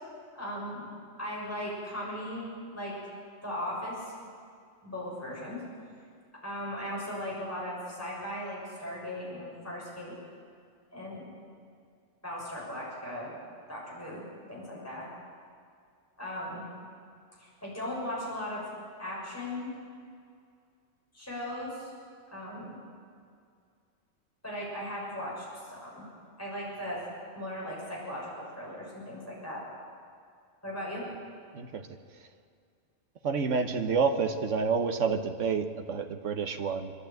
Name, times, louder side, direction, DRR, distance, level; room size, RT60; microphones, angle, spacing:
voice 1, 0.3-0.9 1.2-3.0 3.4-4.1 4.8-5.6 6.4-10.2 10.9-11.3 12.2-13.4 13.7-15.1 16.2-16.6 17.4-18.6 19.0-19.7 21.1-21.9 22.3-22.8 24.4-26.1 26.4-27.0 27.3-29.6 30.6-31.1, left 1 dB, 10° left, -6 dB, 6.4 m, -37 dB
voice 2, 31.5-31.9 33.2-36.9, right 5 dB, 75° right, 6 dB, 1.4 m, -29 dB
26.0 x 11.5 x 9.1 m, 2.3 s
omnidirectional pair, 1.3 m